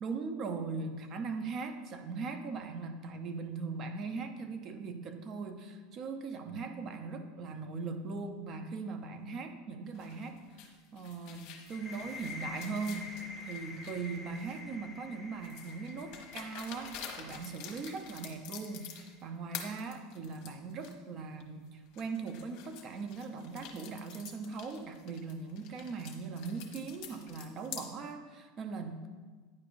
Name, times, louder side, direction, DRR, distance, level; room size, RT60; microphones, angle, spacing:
voice 1, 0.0-10.4 10.9-13.2 13.4-29.1, right 4 dB, 40° right, 7 dB, 0.7 m, -40 dB
sound 1, 9.9-14.8 15.4-19.2 19.5-20.9 21.4-21.5 21.9-27.9, left 8 dB, 55° left, 1.0 m, -48 dB
sound 2, 11.7-19.2, left 3 dB, 10° right, 0.8 m, -48 dB
9.4 x 5.0 x 2.6 m, 1.4 s
hypercardioid pair, 105°, 0 cm